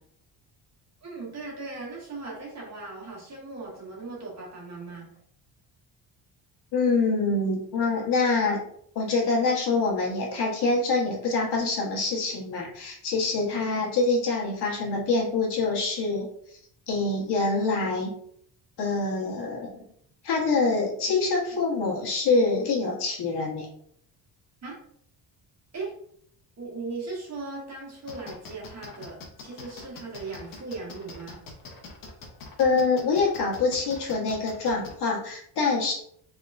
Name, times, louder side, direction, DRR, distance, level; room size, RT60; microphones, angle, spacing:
voice 1, 1.0-5.1 13.5-13.6 24.6-24.8 25.7-25.9 26.6-31.4, right 3 dB, 40° right, -3 dB, 1.4 m, -38 dB
voice 2, 6.7-8.6 8.9-16.6 16.9-18.1 18.8-19.7 20.2-23.7 32.6-35.9, left 3 dB, 65° left, -2 dB, 1.3 m, -25 dB
sound 1, 28.1-34.9, left 4 dB, 50° left, 0.9 m, -43 dB
3.7 x 3.5 x 2.5 m, 0.65 s
cardioid pair, 150°, 43 cm